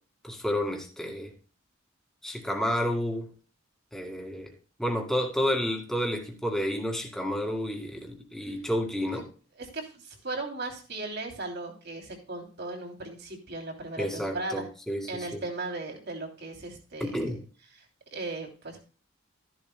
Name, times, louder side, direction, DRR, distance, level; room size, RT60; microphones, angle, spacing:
voice 1, 0.2-1.3 2.2-3.3 3.9-4.5 4.8-9.3 14.0-15.4 17.0-17.4, equal, ahead, 2 dB, 2.0 m, -30 dB
voice 2, 9.6-14.6 15.1-17.3 18.1-18.8, right 2 dB, 55° right, 2 dB, 2.9 m, -37 dB
13.0 x 11.0 x 2.2 m, 0.37 s
head